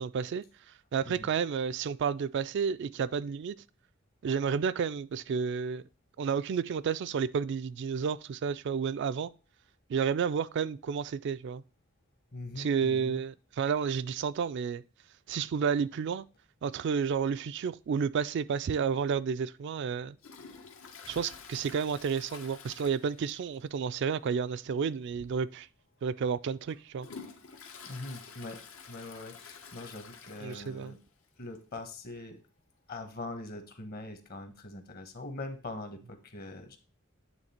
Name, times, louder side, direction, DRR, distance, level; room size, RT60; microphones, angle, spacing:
voice 1, 0.0-3.6 4.2-5.8 6.2-9.3 9.9-11.6 12.6-14.8 15.3-16.3 16.6-20.2 21.1-25.7 26.0-27.1 30.4-30.9, right 6 dB, 60° right, 0.3 m, -31 dB
voice 2, 12.3-13.2 21.0-21.1 27.9-28.6 28.9-31.0 31.4-32.4 32.9-36.8, left 2 dB, 50° left, 1.2 m, -42 dB
Toilet flush, 20.2-23.6 23.9-24.0 24.5-24.6 25.4-25.5 26.1-31.0 31.3-31.4 31.6-31.7 32.7-32.8, left 5 dB, 80° left, 1.2 m, -49 dB
9.0 x 3.6 x 4.3 m
head